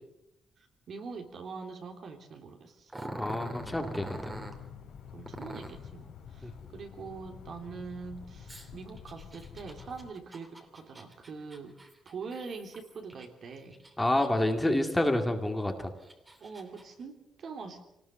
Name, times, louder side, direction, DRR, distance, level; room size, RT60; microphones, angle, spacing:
voice 1, 0.6-2.9 5.1-11.8 12.0-13.8 16.4-17.9, right 4 dB, 55° right, 4 dB, 3.3 m, -43 dB
Growling, 2.9-4.6 5.3-5.9 8.5-13.3 13.7-14.5 15.0-15.1 15.8-16.8, right 1 dB, 15° right, 2.9 m, -44 dB
voice 2, 3.0-4.3 6.4-6.5 14.0-15.9, left 1 dB, 10° left, 5 dB, 2.3 m, -28 dB
sound 1, 3.6-10.1, left 8 dB, 75° left, 4.4 m, -48 dB
26.0 x 19.0 x 6.6 m, 0.87 s
cardioid pair, 125°, 0 cm